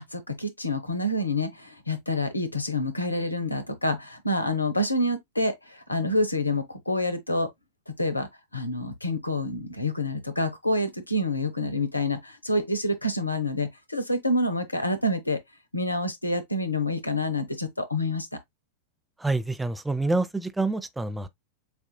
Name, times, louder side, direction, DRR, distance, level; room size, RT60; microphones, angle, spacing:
voice 1, 0.0-7.5 7.9-15.4 15.7-18.3, left 1 dB, 85° left, 0.9 m, -27 dB
voice 2, 19.2-21.3, right 2 dB, 5° right, 0.5 m, -27 dB
7.0 x 2.7 x 2.2 m
figure-of-eight pair, 90°, 0 cm